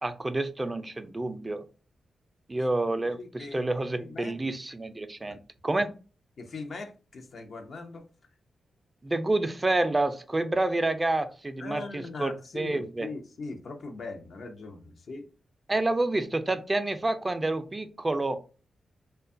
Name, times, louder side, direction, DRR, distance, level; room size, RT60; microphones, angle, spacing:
voice 1, 0.0-1.6 2.5-5.4 5.6-5.9 9.0-13.1 15.7-18.4, right 2 dB, 25° right, 0.3 m, -28 dB
voice 2, 3.0-3.7 4.0-4.4 5.3-5.4 6.4-8.0 11.6-15.3, left 3 dB, 65° left, 0.5 m, -40 dB
2.6 x 2.2 x 2.4 m
cardioid pair, 55°, 0 cm